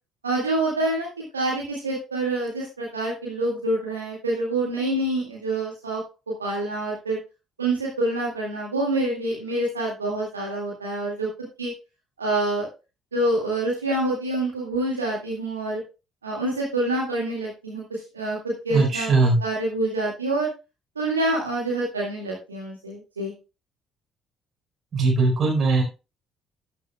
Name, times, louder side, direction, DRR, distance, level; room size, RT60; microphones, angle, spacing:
voice 1, 0.2-1.1 1.3-6.0 6.4-7.2 7.6-11.3 11.6-11.7 12.2-12.7 13.1-15.8 16.2-20.5 21.0-23.3, right 2 dB, 85° right, -4 dB, 2.1 m, -26 dB
voice 2, 18.7-19.4 24.9-25.8, right 3 dB, 45° right, 0 dB, 4.5 m, -20 dB
12.0 x 10.0 x 2.3 m, 0.30 s
figure-of-eight pair, 45°, 0 cm